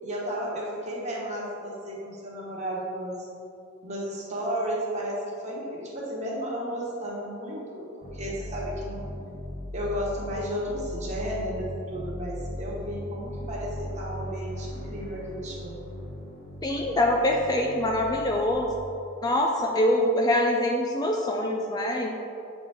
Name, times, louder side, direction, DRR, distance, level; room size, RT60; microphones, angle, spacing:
voice 1, 0.0-3.2 3.8-9.1 9.7-15.8, equal, 35° right, -5 dB, 1.3 m, -33 dB
sound 1, 8.0-18.5, left 1 dB, 45° left, 0.9 m, -38 dB
voice 2, 16.6-18.7 19.2-22.1, left 1 dB, 20° left, 1 dB, 0.3 m, -24 dB
7.5 x 4.3 x 3.5 m, 2.8 s
head